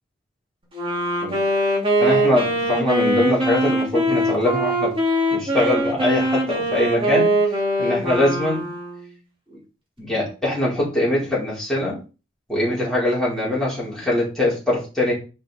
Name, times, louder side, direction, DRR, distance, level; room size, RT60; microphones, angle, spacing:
Wind instrument woodwind instrument, 0.7-9.1, right 1 dB, 25° right, 2.6 m, -22 dB
voice 1, 2.0-4.9 5.3-8.6 10.0-12.0 12.5-15.1, left 1 dB, ahead, -7 dB, 4.8 m, -22 dB
6.6 x 5.5 x 5.2 m, 0.32 s
head